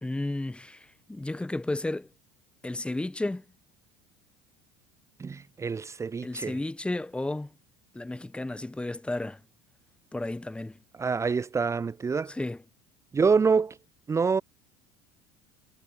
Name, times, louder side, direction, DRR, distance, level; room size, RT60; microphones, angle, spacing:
voice 1, 0.0-2.1 2.6-3.4 6.2-7.5 7.9-9.4 10.1-10.8 12.3-12.6, left 2 dB, 10° left, 1.5 m, -33 dB
voice 2, 5.2-6.6 11.0-12.3 13.1-13.8 14.1-14.4, right 5 dB, 20° right, 0.8 m, -26 dB
hypercardioid pair, 80°, 13 cm